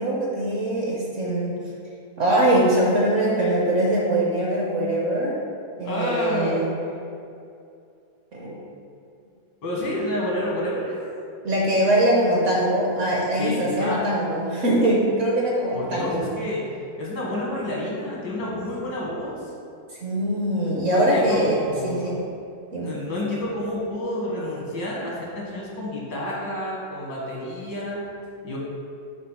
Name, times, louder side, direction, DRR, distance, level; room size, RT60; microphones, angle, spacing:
voice 1, 0.0-1.6 2.2-5.4 5.8-6.7 8.3-8.6 11.4-16.3 20.0-22.2 22.7-23.0, right 1 dB, 60° right, -3 dB, 0.9 m, -22 dB
voice 2, 5.8-6.6 9.6-11.1 13.4-14.1 15.7-16.7 17.0-19.5 20.9-22.2 22.8-28.0 28.4-28.6, left 1 dB, 80° left, -5 dB, 2.1 m, -29 dB
7.2 x 2.5 x 5.5 m, 2.5 s
omnidirectional pair, 1.9 m